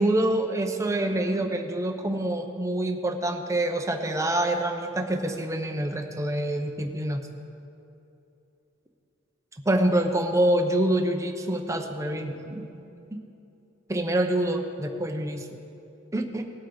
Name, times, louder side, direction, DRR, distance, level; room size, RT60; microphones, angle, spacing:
voice 1, 0.0-7.3 9.6-12.7 13.1-13.2 13.9-15.6 16.1-16.4, right 1 dB, 15° right, 4 dB, 0.8 m, -26 dB
19.0 x 8.2 x 3.9 m, 2.8 s
head